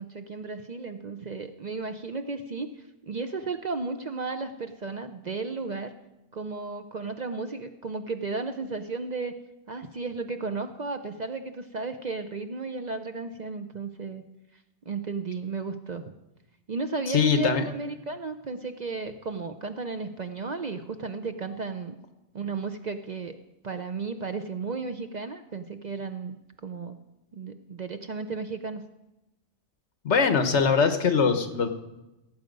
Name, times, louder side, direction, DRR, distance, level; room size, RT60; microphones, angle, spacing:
voice 1, 0.0-2.7 3.0-5.9 6.3-9.3 9.7-14.2 14.9-16.1 16.7-22.0 22.3-23.4 23.6-27.0 27.3-28.9, right 4 dB, 45° right, 8 dB, 0.6 m, -34 dB
voice 2, 17.1-17.6 30.0-31.7, left 5 dB, 70° left, 8 dB, 1.4 m, -22 dB
17.0 x 8.1 x 5.2 m, 0.97 s
omnidirectional pair, 1.2 m